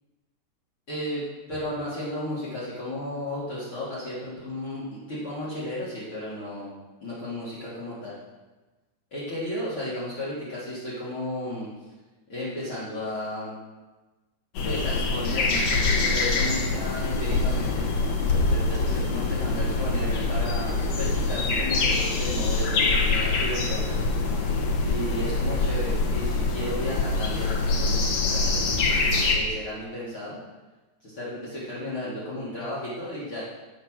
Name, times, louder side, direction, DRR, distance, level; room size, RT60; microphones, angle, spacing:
voice 1, 0.9-1.2 1.5-8.1 9.1-11.7 12.3-13.6 14.6-17.9 18.5-24.0 24.8-30.4 31.0-33.5, left 1 dB, 35° left, -8 dB, 3.3 m, -34 dB
sound 1, 14.5-29.4, left 3 dB, 55° left, 1.9 m, -24 dB
16.0 x 5.7 x 6.4 m, 1.2 s
omnidirectional pair, 4.9 m